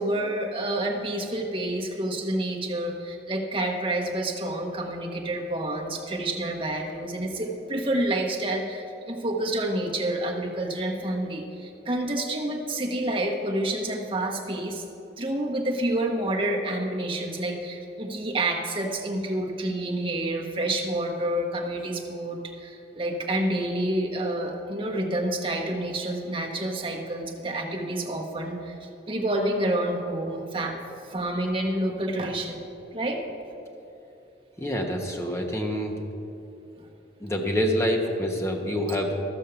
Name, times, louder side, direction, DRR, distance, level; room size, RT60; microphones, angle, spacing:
voice 1, 0.0-14.8 15.2-30.8 31.1-32.6 32.9-33.2 36.8-36.9, right 1 dB, 30° right, 0 dB, 1.1 m, -28 dB
voice 2, 34.6-36.0 37.2-39.2, equal, 15° left, 1 dB, 1.1 m, -26 dB
13.5 x 6.4 x 6.8 m, 2.9 s
head